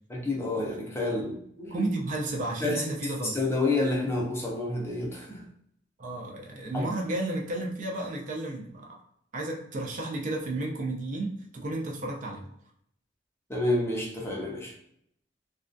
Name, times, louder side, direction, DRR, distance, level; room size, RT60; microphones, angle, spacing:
voice 1, 0.1-1.9 2.6-5.5 6.7-6.9 13.5-14.7, left 2 dB, 15° left, -3 dB, 0.5 m, -29 dB
voice 2, 1.7-3.4 6.0-9.0 9.3-12.5, right 2 dB, 45° right, 0 dB, 0.4 m, -32 dB
2.3 x 2.1 x 2.5 m, 0.70 s
head